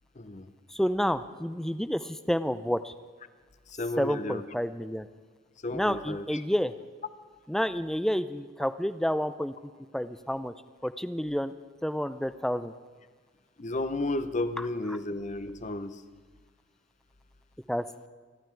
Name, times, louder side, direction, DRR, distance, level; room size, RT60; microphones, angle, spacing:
voice 1, 0.1-0.5 3.7-4.4 5.6-6.4 13.6-16.0, left 2 dB, 35° left, 11 dB, 0.7 m, -33 dB
voice 2, 0.7-2.9 4.0-5.1 5.7-6.7 7.5-9.5 9.9-10.5 10.8-11.5 11.8-12.7 17.7-17.9, equal, ahead, 13 dB, 0.4 m, -29 dB
26.5 x 11.5 x 4.6 m, 1.5 s
head